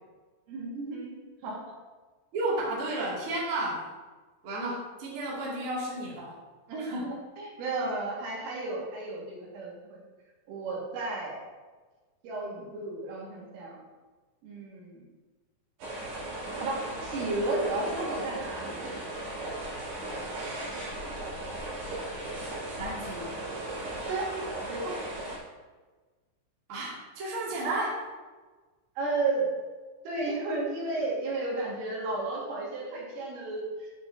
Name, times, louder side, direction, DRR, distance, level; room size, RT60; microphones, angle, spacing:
voice 1, 0.5-1.1 1.4-1.6 6.7-9.9 10.5-11.4 12.2-13.8 14.4-15.1 16.6-18.8 24.1-24.3 24.7-24.9 29.0-29.5 30.1-33.9, right 2 dB, 75° right, -4 dB, 4.5 m, -33 dB
voice 2, 2.3-3.8 4.4-6.4 6.8-7.1 22.8-23.3 26.7-28.0, right 2 dB, 35° right, -6 dB, 2.4 m, -32 dB
sound 1, 15.8-25.4, right 1 dB, 55° right, 4.8 m, -37 dB
10.5 x 9.7 x 2.8 m, 1.3 s
omnidirectional pair, 5.9 m